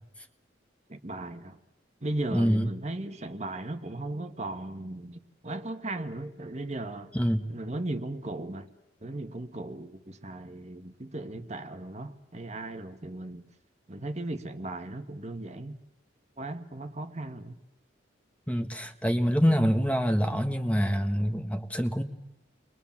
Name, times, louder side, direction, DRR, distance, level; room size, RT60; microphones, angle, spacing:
voice 1, 0.9-1.6 2.0-7.1 7.5-8.7 9.0-13.4 13.9-15.8 16.4-17.5, right 2 dB, 35° right, 1.5 m, -37 dB
voice 2, 2.3-2.7 7.1-7.4 18.5-22.0, equal, 5° left, 1.4 m, -25 dB
30.0 x 22.5 x 7.3 m
head